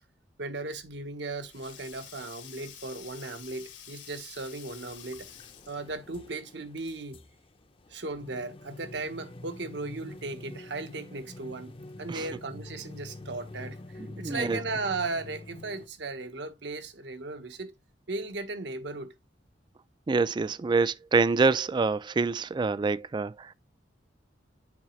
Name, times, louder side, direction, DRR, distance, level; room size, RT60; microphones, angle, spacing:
voice 1, 0.4-5.3 5.7-7.2 7.9-11.7 12.0-17.7 18.1-19.1, right 3 dB, 70° right, 1.1 m, -36 dB
Sink (filling or washing), 0.8-6.0, left 10 dB, 85° left, 1.7 m, -49 dB
sound 1, 4.7-15.9, left 2 dB, 30° left, 0.6 m, -46 dB
voice 2, 14.0-14.6 20.1-23.5, right 4 dB, 25° right, 0.3 m, -26 dB
7.4 x 4.8 x 3.1 m
head